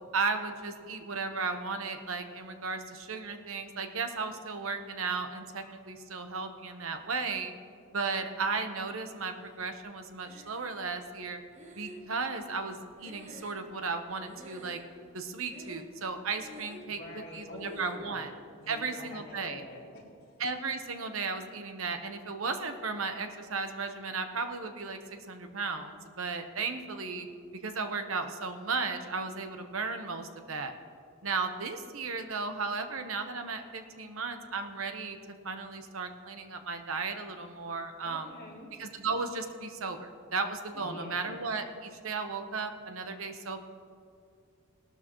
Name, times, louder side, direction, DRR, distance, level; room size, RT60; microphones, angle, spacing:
voice 1, 0.1-7.5 7.9-11.4 11.8-14.8 15.1-17.0 17.3-18.3 18.7-19.6 20.4-27.3 27.6-30.7 31.2-35.2 35.4-38.3 38.8-43.6, right 4 dB, 80° right, 7 dB, 1.0 m, -35 dB
Breathing, 10.2-11.0 11.5-14.0 14.3-15.1 15.5-16.1 16.3-17.0 17.6-18.1, right 1 dB, 35° right, 1.0 m, -50 dB
voice 2, 16.8-18.2 18.6-20.4 38.0-38.7 40.7-41.2, left 1 dB, 45° left, -4 dB, 2.8 m, -45 dB
18.0 x 12.5 x 3.1 m, 2.3 s
head